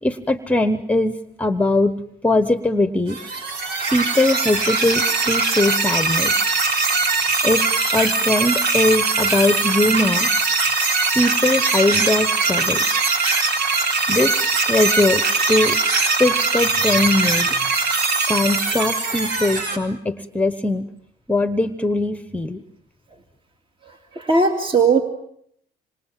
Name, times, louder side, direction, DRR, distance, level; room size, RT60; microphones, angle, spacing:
voice 1, 0.0-3.2 3.9-6.3 7.4-10.3 11.1-12.9 14.1-14.4 14.7-15.8 16.2-17.5 18.3-20.9 21.3-22.6, left 2 dB, 10° left, 11 dB, 1.1 m, -21 dB
sound 1, 3.1-19.8, right 4 dB, 75° right, 4.1 m, -21 dB
voice 2, 24.1-25.0, right 4 dB, 30° right, 5 dB, 2.4 m, -17 dB
26.5 x 26.5 x 7.6 m, 0.71 s
cardioid pair, 110°, 17 cm